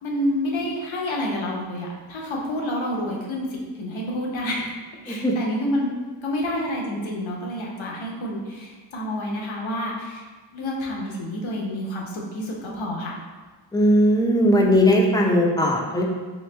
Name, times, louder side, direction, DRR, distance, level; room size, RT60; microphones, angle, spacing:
voice 1, 0.0-4.7 5.0-5.9 6.2-10.2 10.5-13.2, left 1 dB, 75° left, -2 dB, 0.9 m, -28 dB
voice 2, 13.7-16.0, equal, 10° left, -1 dB, 0.6 m, -18 dB
3.3 x 3.1 x 3.3 m, 1.4 s
cardioid pair, 60°, 46 cm